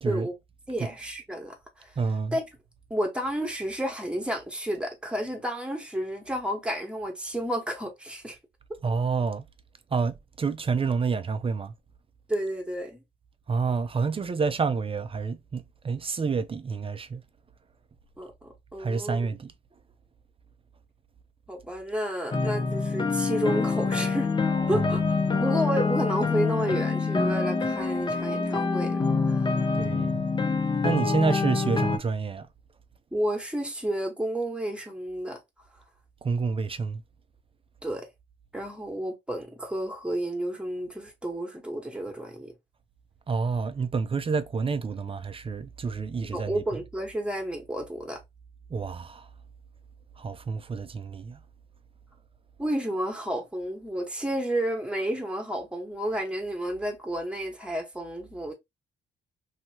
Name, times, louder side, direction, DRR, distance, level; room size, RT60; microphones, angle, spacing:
voice 1, 0.0-0.3 0.8-0.9 2.0-2.4 8.8-9.5 9.9-11.7 13.5-17.2 18.8-19.5 24.7-25.2 29.7-30.3 30.8-32.5 36.2-37.0 43.3-46.8 48.7-49.3 50.2-51.4, right 5 dB, 30° right, 0.4 m, -29 dB
voice 2, 0.7-1.9 2.3-2.4 2.9-8.4 12.3-13.0 18.2-19.3 21.5-24.3 24.7-25.0 25.4-29.6 33.1-35.4 37.8-38.1 38.5-42.5 46.2-48.2 52.6-58.5, right 1 dB, 5° right, 1.1 m, -31 dB
sound 1, 22.3-32.0, left 4 dB, 25° left, 0.6 m, -26 dB
2.9 x 2.8 x 2.7 m
cardioid pair, 90°, 20 cm